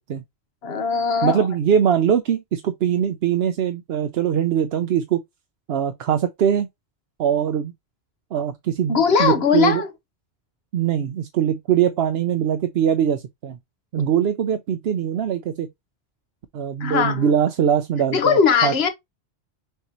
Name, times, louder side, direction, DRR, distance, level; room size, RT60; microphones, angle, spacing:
voice 1, 0.6-1.5 8.9-9.9 16.8-17.3 18.1-18.9, left 6 dB, 70° left, 1.3 m, -19 dB
voice 2, 1.2-5.2 5.7-6.7 7.2-7.7 8.3-9.8 10.7-13.6 13.9-15.7 16.5-18.9, right 9 dB, 70° right, 0.8 m, -22 dB
6.5 x 2.7 x 3.0 m
omnidirectional pair, 1.1 m